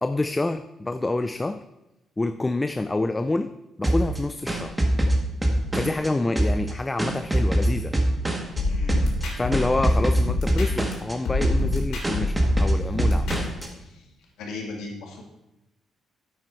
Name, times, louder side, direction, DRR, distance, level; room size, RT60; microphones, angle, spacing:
voice 1, 0.0-1.6 2.2-3.5 3.8-4.8 5.7-7.9 9.4-13.5, left 2 dB, 20° left, 10 dB, 0.4 m, -27 dB
sound 1, 3.8-6.1 6.4-8.6 8.9-9.2 9.5-11.1 11.4-11.8 12.0-13.7, right 1 dB, 15° right, 1.8 m, -23 dB
voice 2, 8.6-9.2 13.6-14.1 14.4-15.2, left 3 dB, 90° left, 1 dB, 2.3 m, -38 dB
sound 2, 8.6-10.9 11.2-13.6, left 3 dB, 75° left, 3.2 m, -27 dB
9.8 x 7.9 x 4.6 m, 0.92 s
cardioid pair, 90°, 0 cm